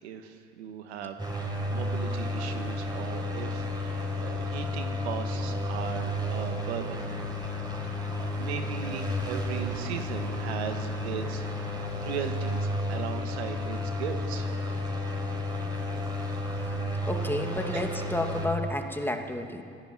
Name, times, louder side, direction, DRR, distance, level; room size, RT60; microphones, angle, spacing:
voice 1, 0.0-7.1 7.8-14.5 17.7-17.9, right 8 dB, 80° right, 7 dB, 1.8 m, -38 dB
sound 1, 1.2-18.5, left 1 dB, 10° right, 6.0 m, -32 dB
voice 2, 17.0-19.6, left 1 dB, 5° left, 4 dB, 2.6 m, -31 dB
26.5 x 16.5 x 9.2 m, 2.5 s
hypercardioid pair, 65°, 32 cm